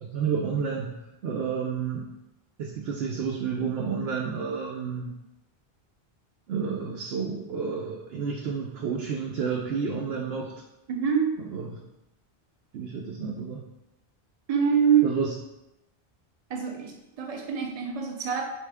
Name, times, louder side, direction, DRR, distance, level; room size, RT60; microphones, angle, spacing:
voice 1, 0.0-2.1 2.6-5.1 6.5-10.5 11.4-11.8 12.7-13.6 15.0-15.3, right 6 dB, 85° right, -1 dB, 0.8 m, -30 dB
voice 2, 10.9-11.4 14.5-15.1 16.5-18.5, right 7 dB, 45° right, 2 dB, 0.6 m, -25 dB
4.6 x 3.2 x 3.4 m, 0.92 s
omnidirectional pair, 1.0 m